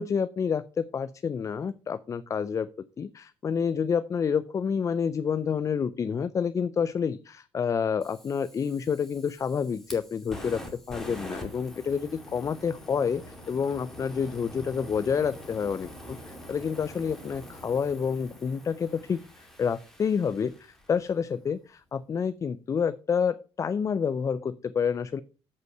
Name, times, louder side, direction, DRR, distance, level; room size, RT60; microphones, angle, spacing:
voice 1, 0.0-2.7 3.0-10.6 10.9-21.6 21.9-25.2, left 6 dB, 30° left, 14 dB, 0.4 m, -28 dB
Fire, 8.0-21.1, equal, 5° left, 2.4 m, -45 dB
7.8 x 5.5 x 5.3 m, 0.35 s
cardioid pair, 115°, 10 cm